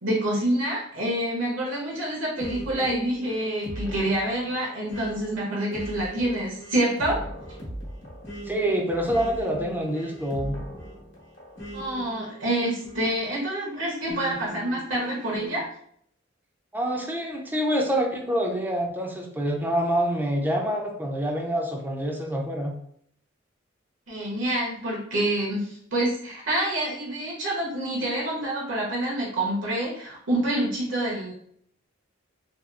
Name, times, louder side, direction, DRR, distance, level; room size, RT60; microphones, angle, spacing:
voice 1, 0.0-7.2 11.7-15.7 24.1-31.3, right 1 dB, 75° right, -4 dB, 0.8 m, -27 dB
sound 1, 2.4-13.5 14.1-15.6, right 1 dB, 65° left, 0.9 m, -39 dB
voice 2, 8.5-10.6 16.7-22.7, equal, 10° right, 1 dB, 0.4 m, -26 dB
2.8 x 2.3 x 2.3 m, 0.65 s
head